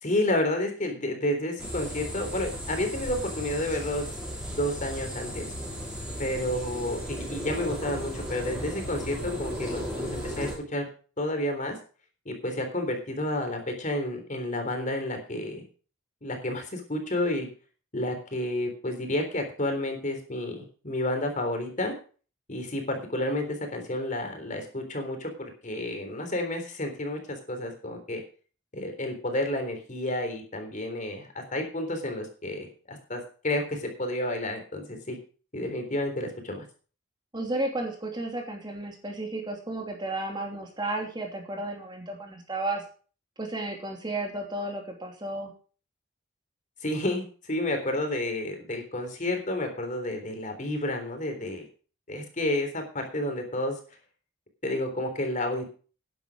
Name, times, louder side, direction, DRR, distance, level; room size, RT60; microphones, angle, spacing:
voice 1, 0.0-4.1 4.5-5.5 6.2-10.9 11.2-11.8 12.3-15.6 16.2-17.5 17.9-21.9 22.5-28.2 28.7-35.2 35.5-36.7 46.8-51.7 52.1-53.8 54.6-55.7, left 1 dB, 40° left, 5 dB, 3.7 m, -30 dB
sound 1, 1.6-10.6, equal, 5° right, 5.4 m, -35 dB
voice 2, 37.3-42.8 43.4-45.5, right 2 dB, 20° right, 2 dB, 2.9 m, -33 dB
11.5 x 11.0 x 5.0 m, 0.39 s
head